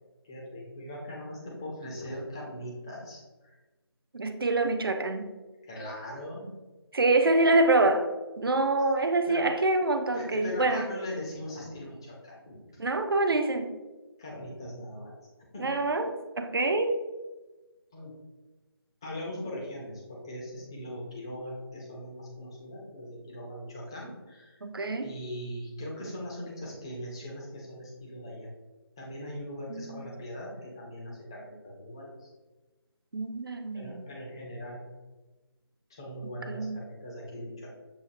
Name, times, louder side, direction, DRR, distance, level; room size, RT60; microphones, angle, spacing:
voice 1, 0.2-3.6 5.6-6.5 9.3-9.5 10.1-12.8 14.2-15.2 15.5-16.1 17.9-18.1 19.0-24.6 25.0-28.5 29.0-32.3 33.7-34.8 35.9-37.7, equal, 10° left, -3 dB, 0.5 m, -40 dB
voice 2, 4.1-5.3 6.9-8.1 8.4-10.9 12.8-13.8 15.6-16.1 16.4-17.0 24.6-25.1 29.7-30.1 33.1-34.0 36.5-36.8, right 2 dB, 60° right, 7 dB, 0.5 m, -26 dB
7.2 x 2.4 x 2.5 m, 1.2 s
figure-of-eight pair, 160°, 13 cm